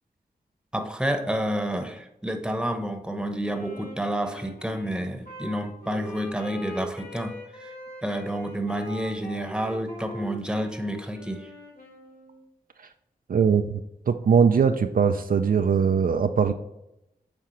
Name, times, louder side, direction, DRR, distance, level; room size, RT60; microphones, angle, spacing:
voice 1, 0.7-7.7 8.0-11.5, right 1 dB, 5° right, 6 dB, 1.0 m, -29 dB
Wind instrument woodwind instrument, 3.4-12.4, left 1 dB, 75° left, 2.3 m, -41 dB
voice 2, 13.3-13.6 14.1-16.5, right 6 dB, 65° right, 7 dB, 0.4 m, -20 dB
9.3 x 3.7 x 3.1 m, 0.86 s
cardioid pair, 45°, 16 cm